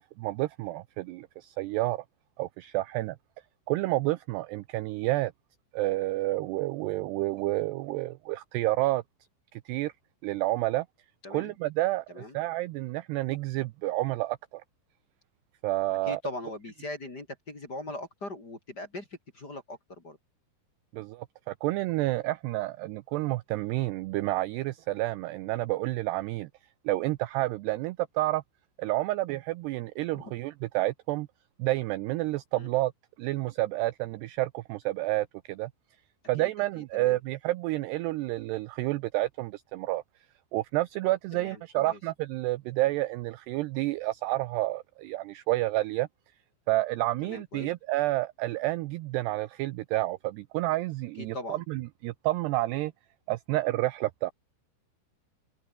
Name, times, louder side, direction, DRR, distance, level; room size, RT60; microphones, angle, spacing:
voice 1, 0.0-2.0 2.4-3.2 3.7-5.3 5.7-9.0 9.5-9.9 10.2-10.9 11.3-14.6 15.6-16.2 20.9-26.5 26.9-28.4 28.8-31.3 31.6-32.9 33.2-35.7 36.3-40.0 40.5-46.1 46.7-52.9 53.3-54.3, right 18 dB, 85° right, 2.3 m, -29 dB
voice 2, 11.2-11.5 12.1-12.4 16.1-19.1 19.3-20.2 30.1-30.3 32.5-32.7 36.4-37.2 41.3-42.0 47.2-47.7 51.2-51.6, left 2 dB, 25° left, 3.4 m, -40 dB
omnidirectional pair, 5.6 m